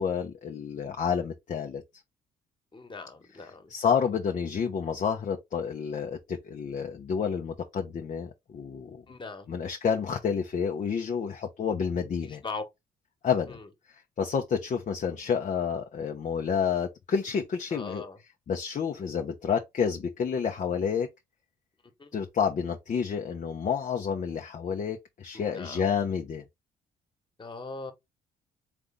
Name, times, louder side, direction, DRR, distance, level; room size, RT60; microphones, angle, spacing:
voice 1, 0.0-1.8 3.7-9.0 9.5-12.4 13.2-13.6 13.9-18.0 18.5-21.1 22.1-26.4, left 6 dB, 45° left, 0.8 m, -29 dB
voice 2, 2.7-3.7 9.1-9.5 12.2-12.6 13.5-13.7 17.7-18.2 22.0-22.1 25.3-25.8 27.4-27.9, left 3 dB, 30° left, 1.4 m, -40 dB
3.8 x 3.4 x 3.6 m
hypercardioid pair, 55°, 17 cm